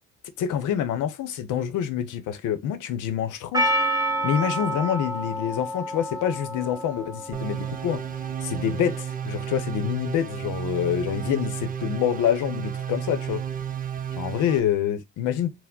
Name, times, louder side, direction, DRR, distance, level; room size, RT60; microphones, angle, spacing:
voice 1, 0.4-3.7 4.2-8.0 8.4-13.4 14.2-15.5, left 9 dB, 85° left, 0.7 m, -26 dB
Percussion, 3.5-8.1, right 1 dB, 10° right, 1.1 m, -28 dB
sound 1, 7.3-14.6, right 9 dB, 30° right, 0.4 m, -32 dB
4.7 x 2.1 x 3.7 m
cardioid pair, 90°, 30 cm